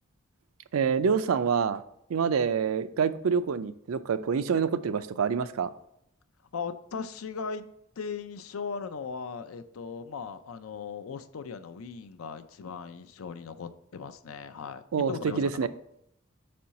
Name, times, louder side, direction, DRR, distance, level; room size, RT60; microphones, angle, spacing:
voice 1, 0.7-1.8 2.1-5.7 14.9-15.7, right 6 dB, 85° right, 13 dB, 0.4 m, -26 dB
voice 2, 6.5-7.7 8.0-15.7, left 5 dB, 85° left, 11 dB, 0.5 m, -38 dB
4.6 x 4.3 x 5.2 m, 0.76 s
head